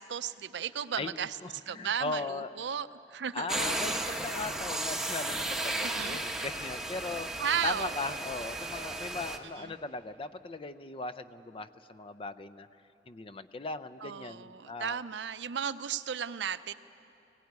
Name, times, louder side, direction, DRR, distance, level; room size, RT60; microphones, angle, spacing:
voice 1, 0.0-1.4 1.7-3.5 5.8-6.2 7.4-8.2 9.6-9.8 14.0-16.7, right 8 dB, 75° right, 14 dB, 0.5 m, -35 dB
voice 2, 1.4-2.5 3.3-12.7 13.1-15.0, left 3 dB, 30° left, 13 dB, 0.5 m, -38 dB
sound 1, 3.5-9.4, right 2 dB, 5° right, 0.9 m, -34 dB
18.5 x 17.5 x 9.4 m, 3.0 s
head